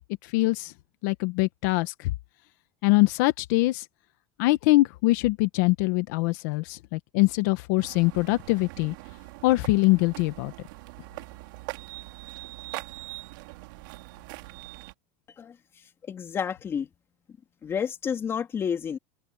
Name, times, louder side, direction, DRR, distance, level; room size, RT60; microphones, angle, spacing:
voice 1, 0.2-0.7 1.0-2.1 2.8-3.8 4.4-8.9 9.4-10.5, left 21 dB, 70° left, 1.3 m, -23 dB
sound 1, 7.8-14.9, right 22 dB, 75° right, 2.7 m, -42 dB
voice 2, 16.1-16.9 17.6-19.0, left 7 dB, 25° left, 3.1 m, -30 dB
supercardioid pair, 155°, 11 cm